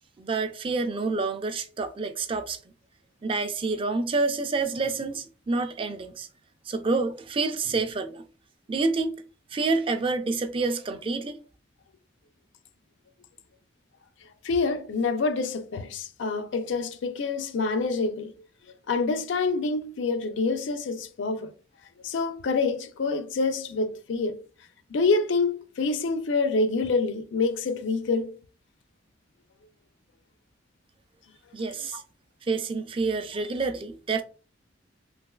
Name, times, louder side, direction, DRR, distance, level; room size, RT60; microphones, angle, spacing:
voice 1, 0.2-2.6 3.2-6.3 6.7-8.2 8.7-9.2 9.5-11.4 31.5-32.0 32.4-34.2, right 3 dB, 30° right, 0.3 m, -28 dB
voice 2, 14.4-18.3 18.9-21.5 22.0-24.4 24.9-28.3 31.9-32.0, left 3 dB, 85° left, 0.4 m, -26 dB
3.3 x 3.0 x 2.2 m
head